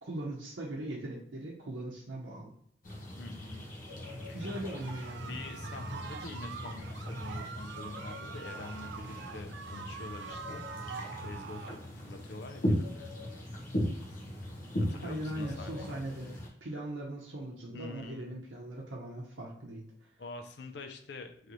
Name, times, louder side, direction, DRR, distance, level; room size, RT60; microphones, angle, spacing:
voice 1, 0.0-2.5 4.3-5.4 15.0-20.1, right 1 dB, 80° right, -4 dB, 0.8 m, -40 dB
sound 1, 2.8-16.5, equal, 45° left, 0.9 m, -38 dB
voice 2, 3.2-3.6 4.3-4.4 5.2-10.6 11.2-13.3 14.8-15.9 17.7-18.4 20.2-21.5, left 3 dB, 60° left, 6 dB, 0.4 m, -46 dB
sound 2, 4.4-11.8, right 6 dB, 65° right, 0.3 m, -45 dB
3.2 x 3.0 x 3.9 m, 0.63 s
head